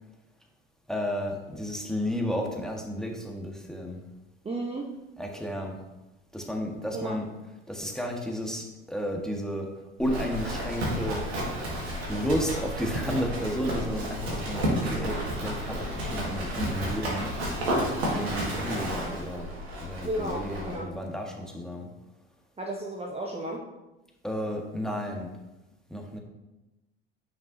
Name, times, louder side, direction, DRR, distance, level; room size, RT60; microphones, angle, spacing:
voice 1, 0.9-4.0 5.2-5.8 6.3-7.3 7.7-9.7 10.0-11.2 12.1-17.3 18.1-19.5 19.8-21.9 24.2-25.3 25.9-26.2, equal, ahead, 1 dB, 1.4 m, -32 dB
voice 2, 4.4-4.9 6.9-7.2 20.0-20.9 22.6-23.6, right 1 dB, 20° right, 0 dB, 1.0 m, -33 dB
Livestock farm animals working animals, 10.0-20.8, equal, 80° right, 1.8 m, -31 dB
9.0 x 5.7 x 2.7 m, 1.0 s
figure-of-eight pair, 60°, 31 cm